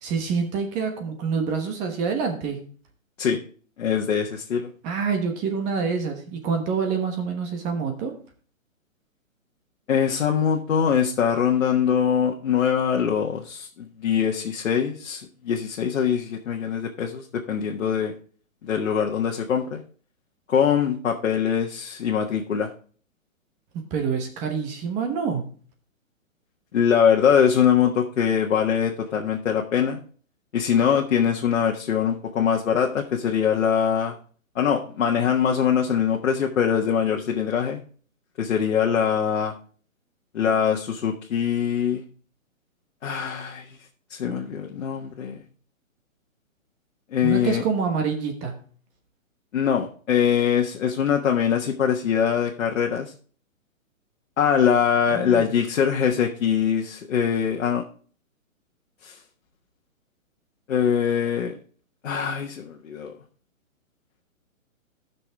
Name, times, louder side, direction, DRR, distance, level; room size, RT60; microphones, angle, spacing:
voice 1, 0.0-2.6 4.8-8.1 23.9-25.4 47.2-48.5 55.1-55.5, right 5 dB, 15° right, 5 dB, 1.2 m, -26 dB
voice 2, 3.8-4.7 9.9-18.1 18.6-19.8 20.5-22.7 26.7-30.0 30.5-34.1 34.5-37.8 38.4-39.5 40.3-42.0 43.0-43.7 44.1-45.4 47.1-47.6 49.5-53.1 54.4-57.8 59.0-59.1 60.7-61.6 62.0-63.1, left 8 dB, 60° left, 0 dB, 1.5 m, -23 dB
14.5 x 6.1 x 3.5 m, 0.43 s
hypercardioid pair, 155°, 41 cm